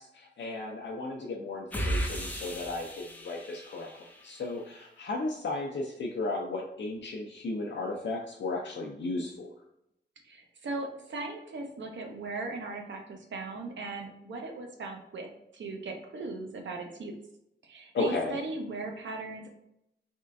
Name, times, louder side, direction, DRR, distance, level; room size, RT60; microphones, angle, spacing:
voice 1, 0.0-3.9 4.2-9.5 17.9-18.4, left 2 dB, 85° left, -2 dB, 0.5 m, -34 dB
sound 1, 1.7-4.4, right 1 dB, 10° left, 0.5 m, -35 dB
voice 2, 10.2-17.2 17.6-19.5, right 3 dB, 90° right, 2 dB, 0.7 m, -38 dB
3.6 x 3.2 x 2.5 m, 0.79 s
wide cardioid pair, 155°, 19 cm